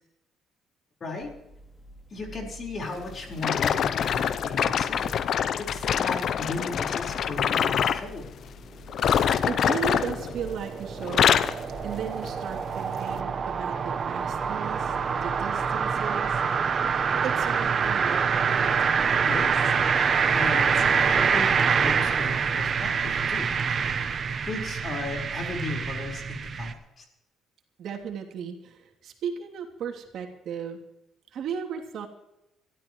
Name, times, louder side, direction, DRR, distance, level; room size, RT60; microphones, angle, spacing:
voice 1, 1.0-1.3 2.1-5.1 5.6-8.3 19.3-19.7 20.3-23.5 23.8-23.9 24.5-27.0, left 3 dB, 40° left, 1 dB, 4.6 m, -36 dB
sound 1, 1.2-17.0, right 1 dB, 10° left, 3.1 m, -47 dB
sound 2, 3.4-8.1 8.9-10.7 11.0-11.6 12.2-12.4 13.1-13.2, left 8 dB, 60° left, 0.7 m, -25 dB
sound 3, 9.4-26.7, right 6 dB, 40° right, 1.0 m, -26 dB
voice 2, 9.5-11.4 11.8-14.9 15.2-16.4 17.2-18.9 27.8-30.8 31.3-32.1, right 7 dB, 65° right, 2 dB, 3.0 m, -35 dB
25.0 x 13.5 x 3.2 m, 0.92 s
cardioid pair, 115°, 0 cm